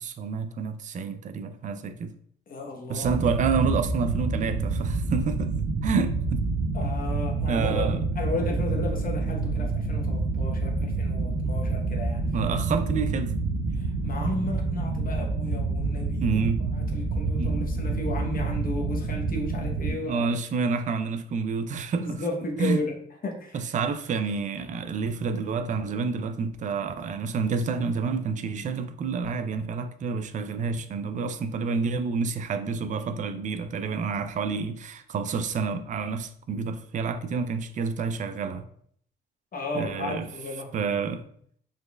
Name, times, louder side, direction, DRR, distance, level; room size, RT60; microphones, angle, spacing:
voice 1, 0.0-2.1 2.9-5.5 5.8-6.8 7.5-8.0 12.3-13.3 13.7-13.9 16.2-16.6 17.4-17.7 19.9-22.2 22.6-22.8 23.5-38.7 39.7-40.3 40.7-41.2, right 5 dB, 40° right, 0.4 m, -29 dB
voice 2, 2.5-3.1 6.7-12.3 13.7-20.3 22.0-23.0 23.2-23.7 39.5-40.7, left 2 dB, 45° left, 0.9 m, -34 dB
sound 1, 3.0-19.9, right 3 dB, 90° right, 0.7 m, -28 dB
4.0 x 3.0 x 2.2 m
cardioid pair, 90°, 20 cm